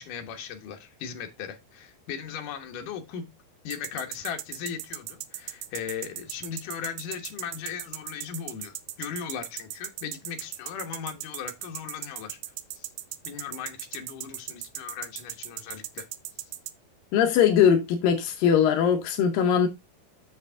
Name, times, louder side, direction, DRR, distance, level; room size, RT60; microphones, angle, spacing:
voice 1, 0.0-3.3 3.6-12.4 12.7-12.9 13.3-16.1, left 8 dB, 65° left, 2.3 m, -38 dB
Trap Hihat, 3.7-16.7, right 14 dB, 85° right, 2.5 m, -37 dB
voice 2, 17.1-19.7, left 8 dB, 80° left, 2.0 m, -21 dB
7.2 x 6.6 x 3.4 m
omnidirectional pair, 5.0 m